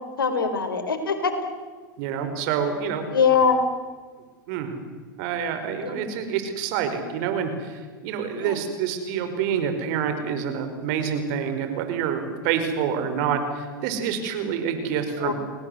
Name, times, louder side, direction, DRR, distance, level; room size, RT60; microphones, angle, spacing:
voice 1, 0.2-1.3 3.1-3.6 5.8-6.0 8.4-8.5 15.1-15.3, left 5 dB, 90° left, 8 dB, 4.3 m, -22 dB
voice 2, 2.0-3.1 4.5-4.8 5.2-15.3, right 7 dB, 55° right, 8 dB, 5.2 m, -27 dB
30.0 x 20.0 x 8.3 m, 1.5 s
hypercardioid pair, 100°, 11 cm